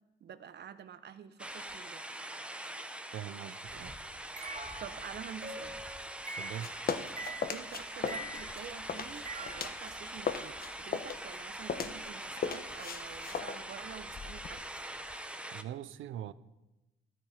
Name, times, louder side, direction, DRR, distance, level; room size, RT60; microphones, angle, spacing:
voice 1, 0.2-2.0 4.8-5.8 7.5-14.6, right 8 dB, 60° right, 1.0 m, -48 dB
sound 1, 1.4-15.6, right 1 dB, 5° right, 0.9 m, -43 dB
voice 2, 3.1-4.0 6.4-6.7 15.5-16.3, right 11 dB, 80° right, 0.7 m, -42 dB
sound 2, 4.4-9.8, right 2 dB, 40° right, 2.0 m, -44 dB
sound 3, 6.4-9.9 10.2-14.6, left 6 dB, 50° left, 1.1 m, -38 dB
14.0 x 12.5 x 5.1 m
cardioid pair, 90°, 20 cm